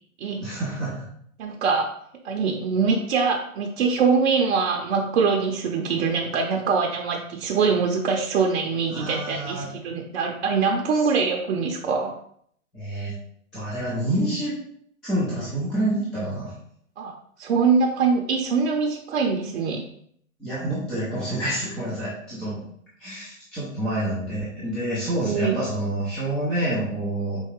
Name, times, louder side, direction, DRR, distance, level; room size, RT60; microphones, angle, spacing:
voice 1, 0.4-1.1 8.9-9.7 12.7-13.1 13.5-14.6 15.0-16.5 20.4-22.7 23.0-27.4, right 1 dB, ahead, -10 dB, 0.3 m, -28 dB
voice 2, 1.4-1.9 2.2-12.1 17.0-19.8 25.2-25.6, right 5 dB, 55° right, 0 dB, 0.7 m, -23 dB
4.5 x 2.8 x 3.1 m, 0.65 s
hypercardioid pair, 120°, 41 cm